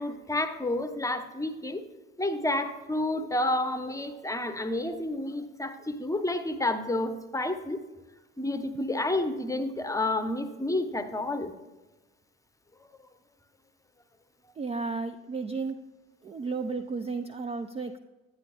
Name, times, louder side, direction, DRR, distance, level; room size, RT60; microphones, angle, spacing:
voice 1, 0.0-1.9 2.2-7.8 8.4-11.5, left 1 dB, 10° left, 8 dB, 0.8 m, -30 dB
voice 2, 14.6-15.8 16.2-18.0, right 4 dB, 20° right, 8 dB, 0.4 m, -33 dB
9.7 x 9.4 x 2.4 m, 1.2 s
hypercardioid pair, 65°, 32 cm